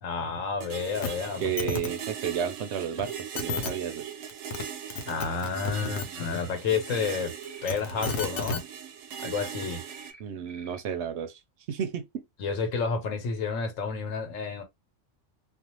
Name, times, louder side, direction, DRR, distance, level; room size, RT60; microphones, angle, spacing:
voice 1, 0.0-1.9 5.1-7.3 7.6-8.6 9.2-9.8 12.4-14.6, left 5 dB, 90° left, 1.2 m, -30 dB
sound 1, 0.6-10.1, right 8 dB, 90° right, 1.0 m, -40 dB
sound 2, 1.0-1.1 1.4-1.9 3.0-3.1 3.4-3.7 4.3-4.6 4.9-6.1 7.4-8.6 9.6-9.7, left 4 dB, 65° left, 1.0 m, -32 dB
voice 2, 1.4-4.1 10.2-11.4 11.7-12.2, right 8 dB, 65° right, 0.8 m, -32 dB
sound 3, 6.9-7.2 7.5-7.8 9.9-10.2 10.5-10.8, right 3 dB, 10° left, 0.7 m, -50 dB
2.5 x 2.4 x 2.9 m
omnidirectional pair, 1.3 m